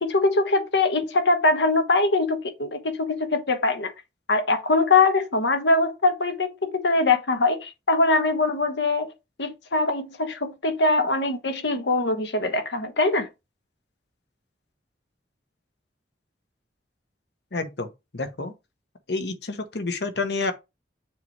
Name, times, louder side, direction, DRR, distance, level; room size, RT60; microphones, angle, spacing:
voice 1, 0.0-3.9 4.3-9.1 9.4-13.3, left 3 dB, 85° left, 1.2 m, -22 dB
voice 2, 17.5-17.9 18.1-18.5 19.1-20.5, left 3 dB, 70° left, 1.0 m, -28 dB
6.8 x 3.1 x 4.6 m
head